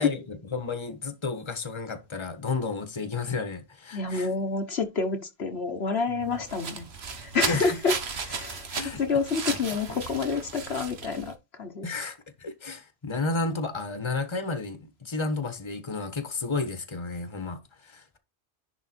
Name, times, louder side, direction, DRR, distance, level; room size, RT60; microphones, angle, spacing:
voice 1, 0.0-4.3 6.1-6.4 7.4-7.8 8.7-9.0 9.5-9.6 11.8-18.2, left 3 dB, 25° left, 1.4 m, -32 dB
voice 2, 3.9-6.8 7.2-7.9 8.2-8.7 9.0-11.3 11.6-11.9, left 4 dB, 70° left, 1.5 m, -28 dB
sound 1, 6.2-11.3, right 5 dB, 70° right, 1.6 m, -35 dB
10.5 x 4.0 x 4.5 m
omnidirectional pair, 1.1 m